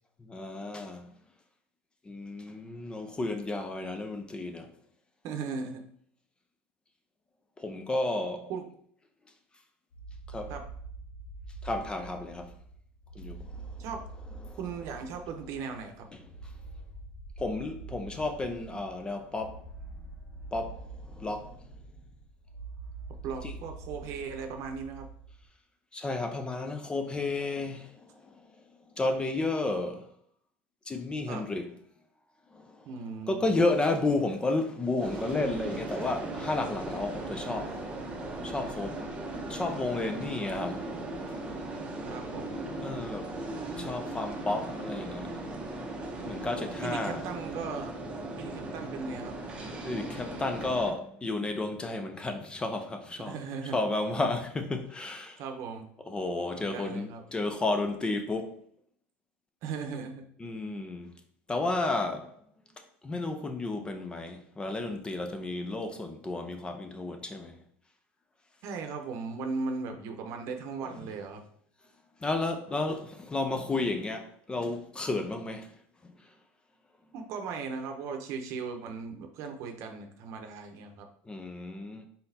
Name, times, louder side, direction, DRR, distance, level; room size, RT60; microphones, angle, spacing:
voice 1, 0.2-1.1 2.0-4.7 7.6-8.5 10.3-10.5 11.6-12.5 13.1-13.8 14.4-14.6 16.1-16.5 17.4-19.7 20.5-21.7 23.4-23.5 25.9-28.6 28.9-30.1 30.9-31.7 32.5-33.0 33.3-37.9 38.4-39.1 39.5-41.5 42.8-43.5 43.8-45.3 46.1-47.2 49.8-53.4 53.7-55.4 56.0-58.6 60.4-61.1 61.5-62.3 62.8-67.6 70.8-71.0 72.2-76.3 81.3-82.1, left 2 dB, 15° left, 0.4 m, -32 dB
voice 2, 5.2-5.8 8.5-8.6 10.5-10.6 13.8-14.0 14.6-16.1 23.2-25.1 31.3-31.5 32.9-33.4 42.0-42.6 46.8-47.9 48.4-49.3 53.3-53.8 55.4-55.9 56.5-57.2 59.6-60.3 68.6-71.4 77.1-81.1, right 5 dB, 55° right, 0.8 m, -37 dB
sound 1, 9.9-25.5, right 3 dB, 60° left, 0.9 m, -45 dB
sound 2, 35.0-50.9, right 2 dB, 20° right, 0.7 m, -38 dB
4.0 x 3.9 x 2.7 m
supercardioid pair, 125°, 6 cm